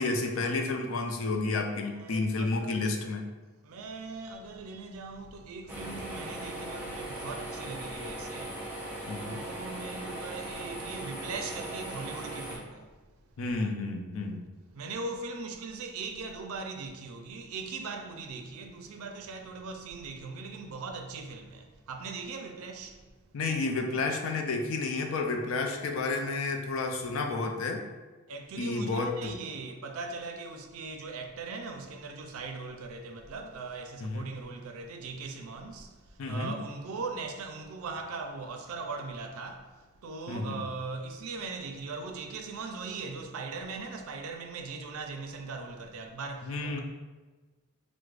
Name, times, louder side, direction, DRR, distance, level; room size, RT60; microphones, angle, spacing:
voice 1, 0.0-3.2 9.1-9.4 13.4-14.4 23.3-27.8 28.6-29.3 34.0-34.3 36.2-36.6 40.3-40.7 46.4-46.8, left 3 dB, 70° left, 0.4 m, -31 dB
voice 2, 1.8-3.1 3.6-13.0 14.7-23.0 28.3-46.8, right 4 dB, 80° right, 0.4 m, -40 dB
sound 1, 5.7-12.6, right 1 dB, 10° right, 0.4 m, -39 dB
4.6 x 2.1 x 2.4 m
head